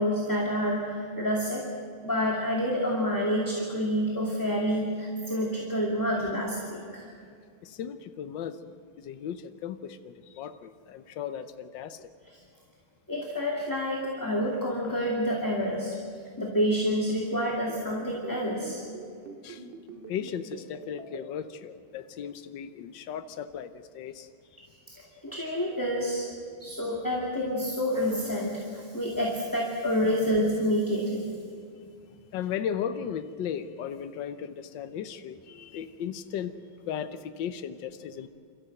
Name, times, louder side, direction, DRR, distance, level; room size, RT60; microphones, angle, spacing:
voice 1, 0.0-1.7 2.0-7.1 13.1-16.0 16.4-18.8 25.2-26.3 26.6-31.4, equal, 10° left, -3 dB, 2.4 m, -28 dB
voice 2, 7.6-8.6 9.0-12.1 19.4-19.6 20.1-24.3 32.1-36.5 36.9-38.3, left 8 dB, 70° left, 9 dB, 1.5 m, -36 dB
sound 1, 17.4-21.2, right 4 dB, 65° right, 2.8 m, -43 dB
27.5 x 14.0 x 7.8 m, 2.2 s
omnidirectional pair, 2.2 m